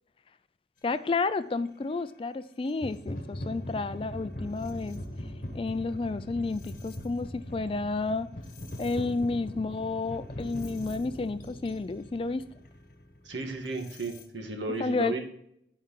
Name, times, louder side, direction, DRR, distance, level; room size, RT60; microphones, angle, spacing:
voice 1, 0.8-5.0 5.5-8.3 8.8-12.5 14.8-15.2, left 3 dB, 30° left, 13 dB, 0.3 m, -31 dB
sound 1, 1.7-1.8 2.7-14.2, left 1 dB, 45° left, 1.1 m, -41 dB
voice 2, 13.2-15.2, right 3 dB, 90° right, 3 dB, 1.6 m, -34 dB
11.0 x 4.8 x 3.8 m, 0.73 s
head